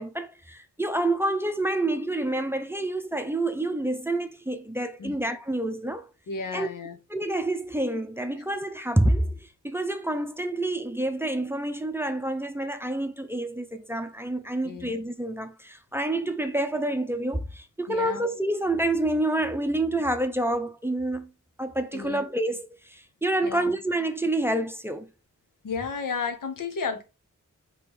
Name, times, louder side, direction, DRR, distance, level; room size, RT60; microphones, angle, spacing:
voice 1, 0.0-6.1 6.5-6.7 7.1-21.3 21.6-25.1, right 1 dB, 5° right, 0.6 m, -28 dB
voice 2, 6.3-7.0 14.6-14.9 17.9-18.2 21.9-22.2 23.4-23.8 25.6-27.0, left 5 dB, 85° left, 0.8 m, -32 dB
4.3 x 3.1 x 3.4 m
cardioid pair, 50°, 32 cm